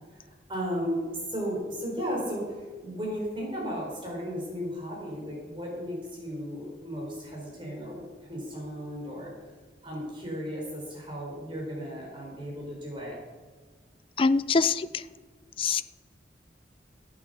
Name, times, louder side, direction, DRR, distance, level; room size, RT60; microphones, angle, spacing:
voice 1, 0.1-9.3 9.8-13.2, equal, 25° right, -3 dB, 4.4 m, -35 dB
voice 2, 14.2-15.0 15.6-15.8, left 4 dB, 30° left, 15 dB, 0.3 m, -24 dB
11.5 x 8.7 x 6.9 m, 1.4 s
head